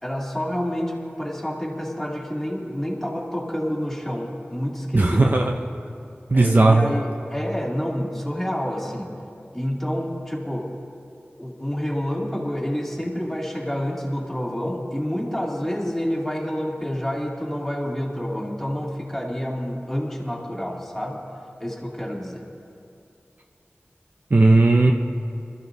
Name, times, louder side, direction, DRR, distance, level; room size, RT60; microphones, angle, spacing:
voice 1, 0.0-5.2 6.3-9.1 9.5-10.7 11.4-21.2 21.6-22.4, equal, 5° left, -4 dB, 2.4 m, -28 dB
voice 2, 4.9-5.6 6.3-6.9 24.3-24.9, right 2 dB, 45° right, 2 dB, 0.7 m, -16 dB
25.0 x 13.5 x 2.7 m, 2.5 s
wide cardioid pair, 65°, 4 cm